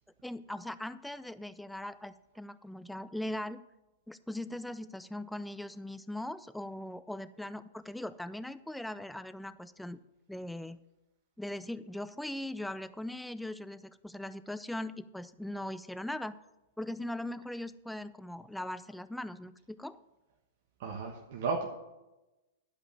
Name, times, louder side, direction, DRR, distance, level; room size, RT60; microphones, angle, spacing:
voice 1, 0.2-3.6 4.1-10.0 10.3-10.8 11.4-16.4 16.8-20.0, left 1 dB, 5° left, 14 dB, 0.4 m, -40 dB
voice 2, 20.8-21.7, right 4 dB, 60° right, 2 dB, 1.2 m, -34 dB
11.5 x 5.1 x 6.8 m, 1.0 s
hypercardioid pair, 110°, 0 cm